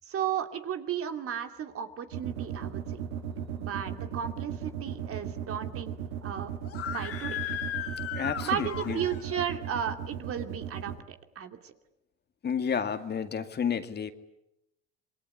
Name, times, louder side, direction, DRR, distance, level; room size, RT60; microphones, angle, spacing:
voice 1, 0.0-3.0 3.6-6.0 6.2-6.5 6.9-7.4 8.4-11.7, right 9 dB, 45° right, 7 dB, 2.7 m, -34 dB
sound 1, 2.1-11.0, right 9 dB, 85° right, 3.0 m, -36 dB
Screaming, 6.6-9.4, left 10 dB, 50° left, 2.3 m, -36 dB
voice 2, 8.1-9.0 12.4-14.1, left 7 dB, 35° left, 8 dB, 2.3 m, -31 dB
27.0 x 21.5 x 10.0 m, 0.85 s
supercardioid pair, 85°, 30 cm